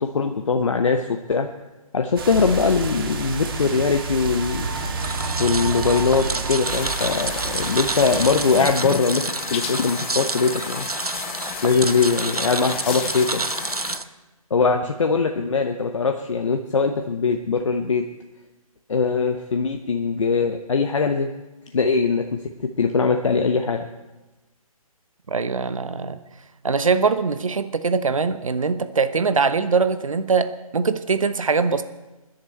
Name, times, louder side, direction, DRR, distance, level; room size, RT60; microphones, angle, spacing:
voice 1, 0.0-1.5 1.9-4.7 5.4-10.8 11.6-13.5 14.5-18.1 18.9-21.3 21.7-23.9, left 4 dB, 55° left, 5 dB, 0.9 m, -21 dB
sound 1, 2.2-8.7, right 4 dB, 40° right, 2.0 m, -29 dB
sound 2, 5.0-14.0, right 3 dB, 90° right, 0.7 m, -29 dB
sound 3, 6.6-14.0, left 8 dB, 20° left, 0.8 m, -33 dB
voice 2, 25.3-26.2 26.6-31.8, right 5 dB, 60° right, 11 dB, 1.1 m, -22 dB
24.0 x 10.5 x 4.4 m, 1.1 s
figure-of-eight pair, 140°, 19 cm